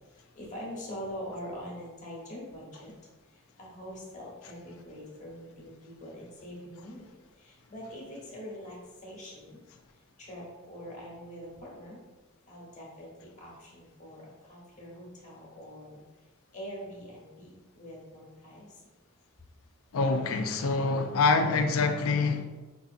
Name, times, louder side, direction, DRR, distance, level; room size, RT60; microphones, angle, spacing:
voice 1, 0.1-2.9 3.3-7.1 7.4-9.6 10.2-12.0 12.5-16.0 16.5-18.7, equal, 35° left, -4 dB, 1.0 m, -44 dB
voice 2, 19.9-22.4, left 4 dB, 75° left, 6 dB, 0.4 m, -25 dB
4.5 x 2.7 x 2.4 m, 1.2 s
head